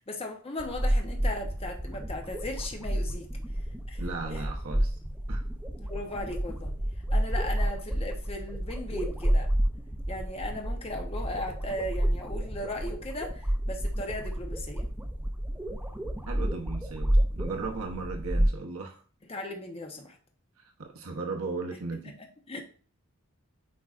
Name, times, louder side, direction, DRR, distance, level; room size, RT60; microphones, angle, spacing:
voice 1, 0.1-3.3 3.9-4.0 4.3-4.4 5.8-6.7 7.1-9.5 10.1-14.9 19.3-20.2 22.0-22.1 22.5-22.6, left 1 dB, 25° left, 0.9 m, -37 dB
sound 1, 0.6-18.5, equal, 5° right, 0.6 m, -30 dB
voice 2, 4.0-4.9 5.3-5.4 16.3-19.0 20.8-22.2, right 3 dB, 75° right, 0.9 m, -36 dB
8.5 x 4.7 x 2.5 m
head